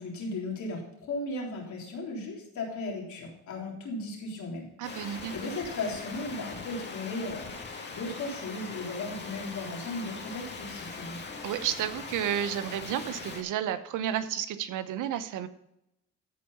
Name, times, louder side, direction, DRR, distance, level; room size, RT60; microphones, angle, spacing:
voice 1, 0.0-4.7 4.9-7.5 7.9-11.2, left 2 dB, 70° left, -2 dB, 3.8 m, -36 dB
sound 1, 4.8-13.4, left 4 dB, 35° left, 2.1 m, -41 dB
voice 2, 4.8-5.3 11.4-15.5, right 10 dB, 85° right, 12 dB, 0.9 m, -31 dB
13.5 x 4.8 x 5.5 m, 0.81 s
cardioid pair, 90°, 30 cm